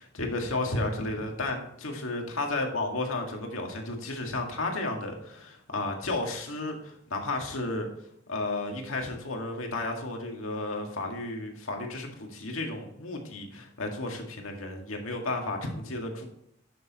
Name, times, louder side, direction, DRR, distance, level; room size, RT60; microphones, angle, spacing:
voice 1, 0.0-7.9 8.3-16.3, left 2 dB, 80° left, 2 dB, 1.9 m, -33 dB
11.0 x 6.8 x 3.0 m, 0.73 s
head